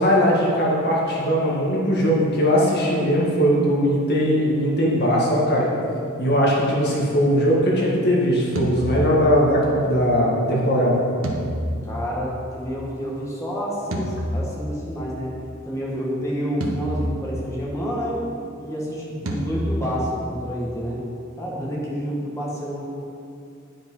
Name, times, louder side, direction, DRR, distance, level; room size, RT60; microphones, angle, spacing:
voice 1, 0.0-5.7 6.2-11.0, equal, 50° left, -4 dB, 1.7 m, -19 dB
sound 1, 8.6-9.7 11.2-12.8 13.9-15.1 16.6-17.8 19.3-20.4, equal, 70° right, 1.1 m, -29 dB
voice 2, 11.9-15.3 15.6-18.2 18.6-21.0 21.4-22.8, equal, 15° left, -6 dB, 1.7 m, -29 dB
10.5 x 5.5 x 5.5 m, 2.5 s
head